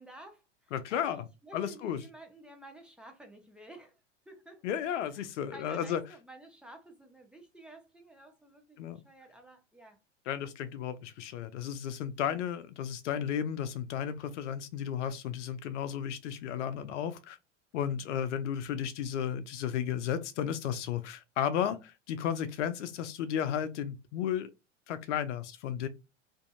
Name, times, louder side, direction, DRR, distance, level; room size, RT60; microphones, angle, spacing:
voice 1, 0.0-4.0 4.3-4.8 5.1-10.0 17.9-18.1, right 1 dB, 5° right, 0.7 m, -52 dB
voice 2, 0.7-1.3 1.5-2.0 4.6-6.0 8.8-9.0 10.3-17.4 17.7-24.5 24.9-25.9, left 9 dB, 75° left, 0.5 m, -33 dB
2.6 x 2.5 x 2.5 m
hypercardioid pair, 100°, 37 cm